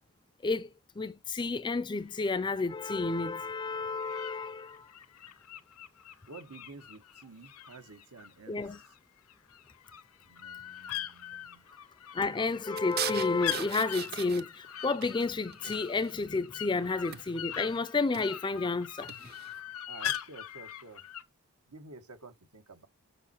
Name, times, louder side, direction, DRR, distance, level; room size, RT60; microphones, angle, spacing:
voice 1, 1.0-4.9 8.5-8.8 12.1-19.3, left 3 dB, 20° left, 0.4 m, -31 dB
sound 1, 2.0-2.7 3.7-9.0 9.3-21.2, left 11 dB, 75° left, 0.7 m, -42 dB
voice 2, 6.3-8.6 10.3-11.7 19.9-21.0 21.7-22.9, right 3 dB, 90° right, 1.4 m, -51 dB
sound 2, 12.8-14.7 15.0-16.3 17.1-17.5 18.0-18.4 19.1-19.5, right 10 dB, 45° right, 0.6 m, -39 dB
6.9 x 5.6 x 4.3 m
head